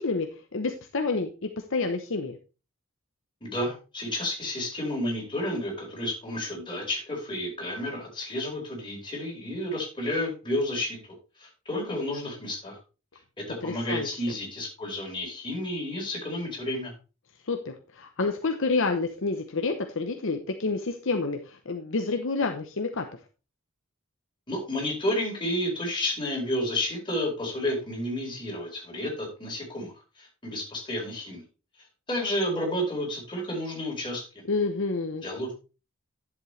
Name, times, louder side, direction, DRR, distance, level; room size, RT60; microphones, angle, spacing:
voice 1, 0.0-2.4 13.6-14.2 17.5-23.1 34.5-35.2, left 3 dB, 65° left, 5 dB, 0.9 m, -29 dB
voice 2, 3.4-11.0 11.4-12.8 13.5-16.9 24.5-29.9 30.2-31.4 32.1-34.2 35.2-35.5, left 1 dB, 25° left, -2 dB, 4.7 m, -31 dB
11.0 x 7.4 x 3.3 m, 0.32 s
head